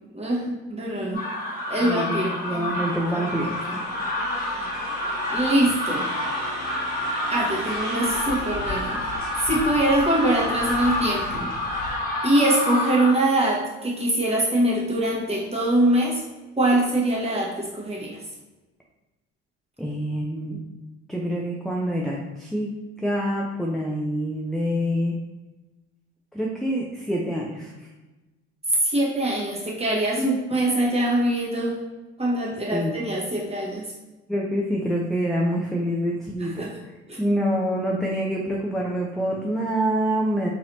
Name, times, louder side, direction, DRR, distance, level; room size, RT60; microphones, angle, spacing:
voice 1, 0.1-0.4 0.7-1.2 1.7-2.8 3.1-3.8 5.3-6.0 7.3-9.0 9.4-11.5 12.2-16.2 16.6-18.1 28.8-31.8 32.2-33.9 36.4-36.7 37.1-37.2, right 1 dB, 15° right, -4 dB, 1.4 m, -23 dB
voice 2, 0.9-1.3 1.8-3.5 19.8-20.6 21.1-22.7 23.0-25.2 26.3-27.9 30.2-30.4 32.7-33.0 34.3-36.7 37.2-40.5, equal, ahead, -2 dB, 0.5 m, -26 dB
sound 1, 1.1-13.1, left 1 dB, 25° left, 1.2 m, -28 dB
sound 2, 2.4-12.0, right 1 dB, 70° right, 1.2 m, -38 dB
4.0 x 2.9 x 2.7 m, 1.1 s
hypercardioid pair, 60°, 36 cm